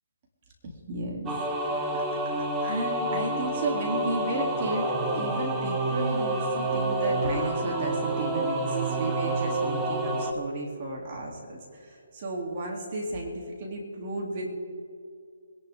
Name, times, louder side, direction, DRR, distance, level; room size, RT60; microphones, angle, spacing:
voice 1, 0.9-1.3 1.6-2.0 2.6-14.6, right 2 dB, 35° right, -1 dB, 3.4 m, -33 dB
sound 1, 1.3-10.3, right 2 dB, 15° right, 1.4 m, -28 dB
24.5 x 11.5 x 3.8 m, 2.5 s
hypercardioid pair, 155°, 0 cm